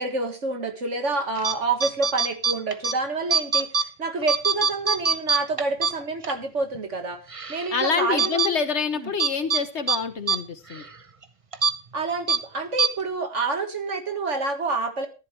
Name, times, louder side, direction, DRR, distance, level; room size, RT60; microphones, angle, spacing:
voice 1, 0.0-7.2 7.5-8.4 9.0-9.1 11.9-15.1, right 3 dB, 60° right, 6 dB, 2.1 m, -28 dB
sound 1, 1.4-1.5 1.8-2.9 3.3-3.9 4.2-6.4 6.7-6.8 7.3-7.7 8.2-8.5 9.2-9.6 9.9-10.0 10.3-10.4 10.7-10.9 11.5-11.7 12.3-12.4 12.8-12.9, right 5 dB, 30° right, 0.8 m, -23 dB
voice 2, 7.7-10.8, left 5 dB, 60° left, 10 dB, 1.4 m, -26 dB
14.0 x 11.0 x 3.3 m, 0.32 s
omnidirectional pair, 1.4 m